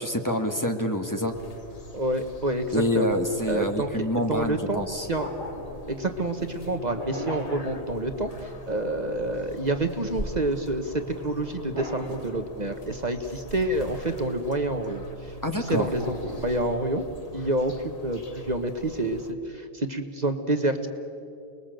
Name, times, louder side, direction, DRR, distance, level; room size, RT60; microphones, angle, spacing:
voice 1, 0.0-1.3 2.7-5.1 15.4-15.9, equal, 15° left, 4 dB, 1.6 m, -26 dB
sound 1, 1.3-19.3, equal, 35° left, 1.5 m, -43 dB
voice 2, 1.9-3.2 3.4-5.3 5.9-17.1 17.3-20.9, right 1 dB, 40° right, 6 dB, 1.3 m, -28 dB
sound 2, 5.1-8.5 11.5-12.9 15.9-17.2, left 1 dB, 25° right, 5.3 m, -39 dB
29.0 x 20.5 x 7.8 m, 2.6 s
omnidirectional pair, 1.1 m